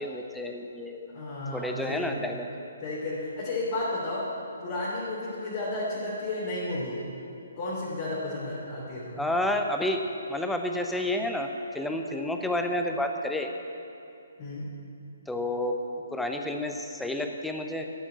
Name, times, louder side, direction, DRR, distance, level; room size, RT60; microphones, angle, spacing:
voice 1, 0.0-1.1 1.5-2.5 9.2-10.0 10.3-11.5 11.7-13.5 15.3-15.8 16.1-17.9, left 1 dB, 5° left, 4 dB, 0.8 m, -30 dB
voice 2, 1.1-2.1 2.8-4.2 4.6-7.0 7.6-9.2 14.4-14.7, left 2 dB, 35° left, -8 dB, 3.1 m, -32 dB
13.5 x 7.3 x 8.5 m, 2.7 s
figure-of-eight pair, 130°, 0 cm